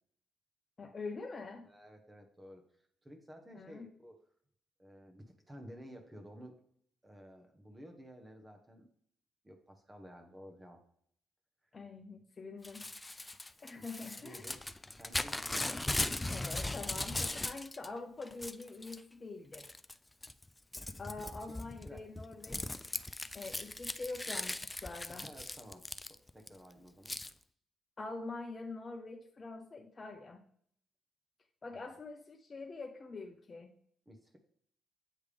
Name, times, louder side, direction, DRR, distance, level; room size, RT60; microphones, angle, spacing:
voice 1, 0.8-1.7 3.5-3.9 11.7-12.9 13.6-14.5 15.6-15.8 16.3-19.8 21.0-22.8 23.3-25.3 28.0-30.4 31.6-33.7, left 3 dB, 35° left, 2 dB, 0.7 m, -45 dB
voice 2, 1.6-2.6 3.0-4.2 4.8-6.6 7.0-8.9 9.4-10.8 13.8-14.7 15.0-15.4 21.6-22.1 25.1-27.1 31.7-31.8 34.1-34.4, equal, 20° right, 4 dB, 1.0 m, -53 dB
Crumpling crinkling / Tearing, 12.6-17.9 18.2-19.0 19.5-19.9 20.2-26.5 27.1-27.3, left 2 dB, 15° left, 0.3 m, -39 dB
8.4 x 3.4 x 3.3 m, 0.63 s
supercardioid pair, 65°, 0 cm